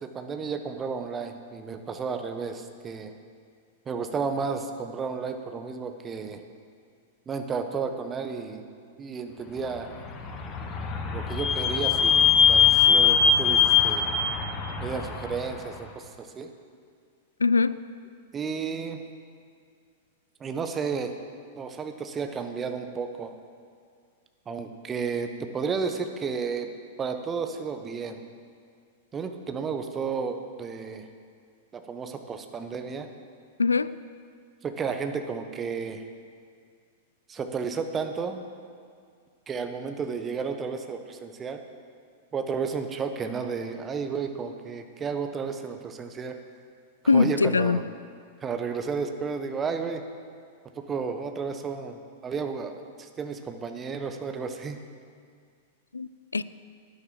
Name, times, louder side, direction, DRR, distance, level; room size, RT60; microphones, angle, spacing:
voice 1, 0.0-3.1 3.9-6.4 7.3-8.7 9.0-9.9 11.1-14.1 14.8-16.5 18.3-19.0 20.4-21.1 21.6-23.3 24.5-26.7 27.0-28.2 29.1-31.1 31.7-33.1 34.6-36.0 37.3-38.4 39.5-41.6 42.3-46.4 47.1-47.8 48.4-50.0 50.8-54.8, right 5 dB, 20° right, 1.2 m, -32 dB
Vehicle / Squeak, 10.0-15.6, left 6 dB, 30° left, 1.5 m, -22 dB
voice 2, 17.4-17.8 33.6-33.9 47.1-47.8 55.9-56.4, left 4 dB, 80° left, 0.3 m, -22 dB
11.0 x 10.5 x 7.5 m
figure-of-eight pair, 95°, 0 cm